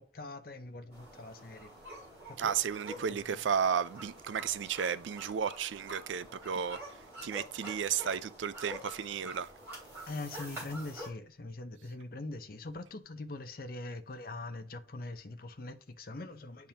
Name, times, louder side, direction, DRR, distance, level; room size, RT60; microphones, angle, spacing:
voice 1, 0.0-1.8 2.3-2.5 2.9-3.4 10.1-16.7, left 2 dB, 50° left, 0.6 m, -43 dB
sound 1, 0.9-11.1, right 1 dB, 10° right, 3.5 m, -47 dB
voice 2, 2.4-6.8 7.2-9.5, right 7 dB, 85° right, 0.4 m, -33 dB
10.0 x 3.5 x 2.8 m
head